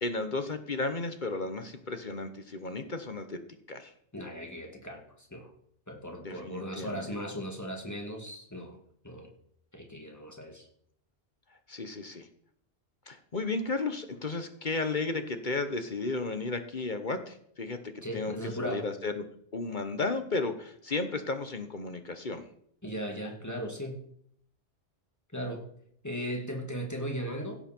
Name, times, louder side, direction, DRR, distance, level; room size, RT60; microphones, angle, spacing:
voice 1, 0.0-3.4 3.7-3.9 6.2-7.2 11.7-12.3 13.1-19.2 19.5-22.5, left 3 dB, 45° left, 8 dB, 1.2 m, -34 dB
voice 2, 4.1-5.5 5.9-8.8 9.0-9.3 9.7-10.7 18.0-18.9 22.8-24.1 25.3-25.6 26.0-27.6, equal, 15° left, 1 dB, 2.3 m, -37 dB
16.5 x 7.3 x 4.5 m, 0.66 s
omnidirectional pair, 1.2 m